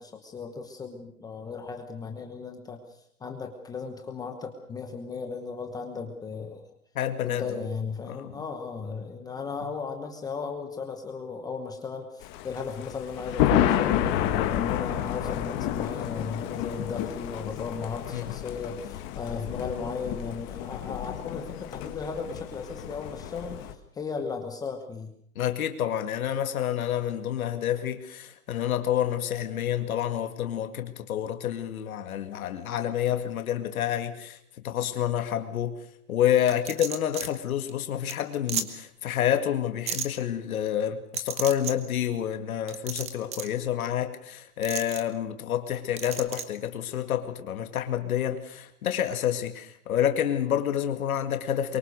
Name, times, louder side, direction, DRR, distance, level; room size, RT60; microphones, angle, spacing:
voice 1, 0.0-6.6 7.2-23.6 23.9-25.1, left 5 dB, 10° left, 1.1 m, -36 dB
voice 2, 7.0-7.6 8.1-8.4 18.1-18.3 25.4-34.4 34.6-35.8 36.1-51.8, left 10 dB, 65° left, 2.1 m, -28 dB
Thunder, 12.2-23.7, left 11 dB, 25° left, 1.5 m, -30 dB
sound 1, 36.5-37.3 37.7-37.8 38.1-38.2 38.5-38.7 39.9-40.1 41.1-41.7 42.7-43.5 44.6-45.0 46.0-46.4, right 8 dB, 15° right, 1.1 m, -33 dB
23.5 x 22.5 x 6.6 m
hypercardioid pair, 160°, 45 cm